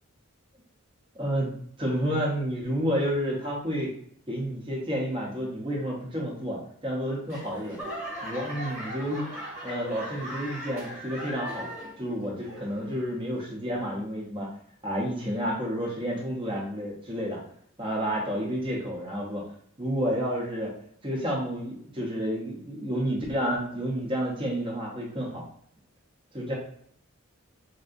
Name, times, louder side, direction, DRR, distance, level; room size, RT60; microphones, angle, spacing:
voice 1, 1.1-1.5 1.8-3.9 4.3-7.8 8.2-9.3 9.6-11.7 12.0-14.5 14.8-17.4 17.8-19.5 19.8-20.7 21.0-25.4 26.3-26.5, equal, 25° right, -3 dB, 0.7 m, -30 dB
Laughter / Clapping / Crowd, 7.3-12.1 12.4-12.9 13.5-13.6, equal, 5° right, 1.1 m, -38 dB
3.5 x 2.6 x 2.5 m, 0.63 s
head